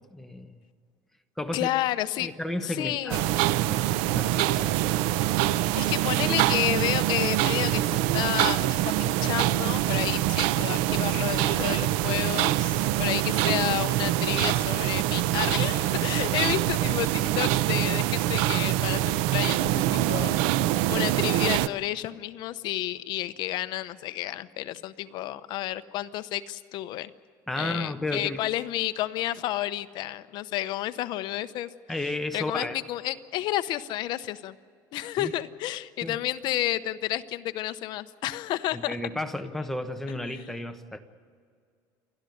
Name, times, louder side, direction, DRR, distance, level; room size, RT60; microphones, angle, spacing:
voice 1, 0.1-0.6 1.4-1.7 2.2-3.2 3.6-4.7 16.4-16.5 27.5-28.4 31.9-32.8 35.2-35.3 36.0-36.2 38.7-41.0, left 2 dB, 5° left, 5 dB, 1.1 m, -33 dB
voice 2, 1.5-2.3 2.6-3.3 5.8-20.3 20.9-27.1 27.6-31.7 32.0-34.5 34.9-39.0 40.3-40.4, left 14 dB, 55° left, 13 dB, 0.8 m, -31 dB
sound 1, 3.1-21.7, right 14 dB, 85° right, 0.6 m, -25 dB
29.5 x 12.5 x 9.3 m, 2.1 s
cardioid pair, 155°, 9 cm